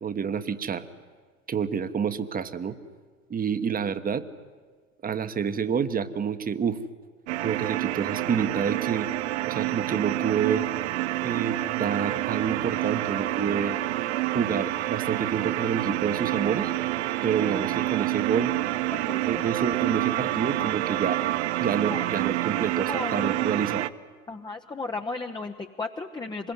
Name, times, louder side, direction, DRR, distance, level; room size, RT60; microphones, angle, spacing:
voice 1, 0.0-0.8 1.5-2.8 3.3-4.2 5.0-6.8 7.4-9.1 9.5-10.7 11.2-13.8 14.3-16.7 17.2-18.5 19.2-21.2 21.6-23.9, right 7 dB, 20° right, 11 dB, 1.3 m, -28 dB
sound 1, 7.3-23.9, right 15 dB, 55° right, 0.9 m, -28 dB
voice 2, 18.9-19.5 21.9-22.1 22.9-23.3 24.3-26.5, left 3 dB, 10° left, 3 dB, 1.0 m, -35 dB
26.5 x 21.5 x 9.7 m, 1.5 s
figure-of-eight pair, 75°, 40 cm